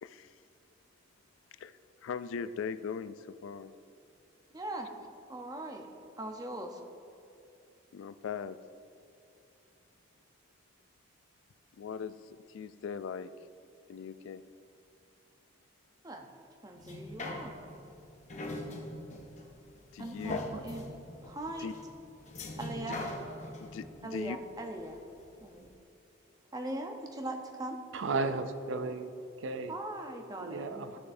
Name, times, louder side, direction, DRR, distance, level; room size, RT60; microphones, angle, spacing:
voice 1, 0.0-0.3 1.6-1.7 2.0-3.7 7.9-8.6 11.8-13.3 13.9-14.4 19.9-20.4 21.6-21.7 23.6-24.4, left 6 dB, 80° left, 13 dB, 0.3 m, -39 dB
voice 2, 4.5-4.9 5.3-5.9 6.2-6.8 16.0-16.3 16.6-17.5 20.0-20.8 21.2-21.7 22.6-23.0 24.0-25.0 25.4-25.7 26.5-27.8 29.7-31.0, right 1 dB, 20° right, 3 dB, 0.6 m, -40 dB
sound 1, 16.8-25.3 25.7-25.8, left 2 dB, 35° left, 0.7 m, -42 dB
voice 3, 27.9-29.1 29.4-29.7 30.4-31.0, right 3 dB, 75° right, 10 dB, 0.5 m, -34 dB
14.0 x 6.4 x 2.6 m, 2.7 s
head